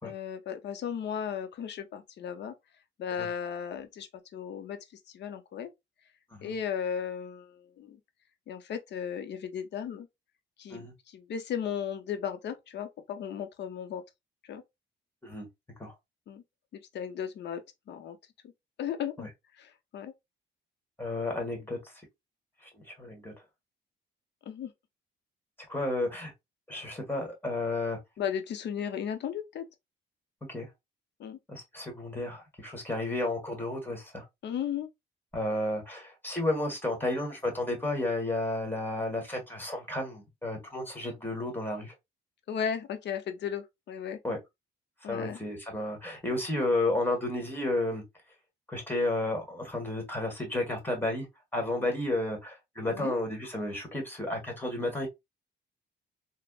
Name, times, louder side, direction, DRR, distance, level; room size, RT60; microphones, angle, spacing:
voice 1, 0.0-2.5 3.0-4.8 5.1-5.7 6.4-8.0 8.5-10.1 10.6-14.0 14.4-14.6 16.3-16.4 16.7-18.2 18.8-20.1 24.5-24.7 28.2-29.7 31.2-31.4 34.4-34.9 42.5-44.2 45.0-45.4 52.8-53.2, left 8 dB, 60° left, 0.6 m, -35 dB
voice 2, 21.0-21.9 22.6-23.3 25.7-26.3 26.7-28.0 30.5-30.7 31.5-34.2 35.3-41.9 44.2-44.4 45.0-48.0 48.7-51.3 51.5-55.1, left 2 dB, 10° left, 1.4 m, -32 dB
3.3 x 2.1 x 2.3 m
cardioid pair, 90°, 20 cm